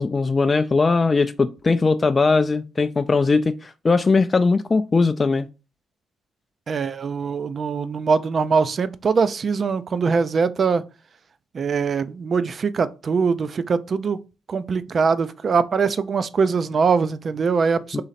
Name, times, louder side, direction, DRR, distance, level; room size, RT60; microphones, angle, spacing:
voice 1, 0.0-5.5 17.9-18.0, left 4 dB, 30° left, 0.3 m, -20 dB
voice 2, 6.7-10.8 11.5-14.2 14.5-18.0, right 5 dB, 45° right, 0.4 m, -22 dB
3.9 x 3.1 x 4.1 m
cardioid pair, 90°, 0 cm